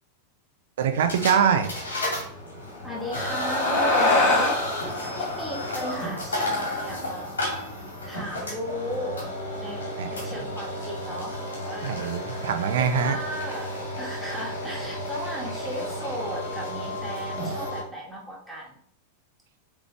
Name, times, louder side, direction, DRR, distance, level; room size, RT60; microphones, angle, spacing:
voice 1, 0.8-1.7 10.0-10.1 11.8-13.2, right 7 dB, 60° right, 8 dB, 0.8 m, -23 dB
sound 1, 0.9-17.8, left 1 dB, 70° left, 2.4 m, -32 dB
sound 2, 2.8-7.5, left 2 dB, 35° left, 1.8 m, -26 dB
voice 2, 2.8-4.6 5.1-7.3 8.0-11.4 11.6-12.0 12.8-18.8, equal, 5° right, -4 dB, 2.2 m, -36 dB
7.4 x 3.7 x 3.4 m, 0.62 s
figure-of-eight pair, 90°, 0 cm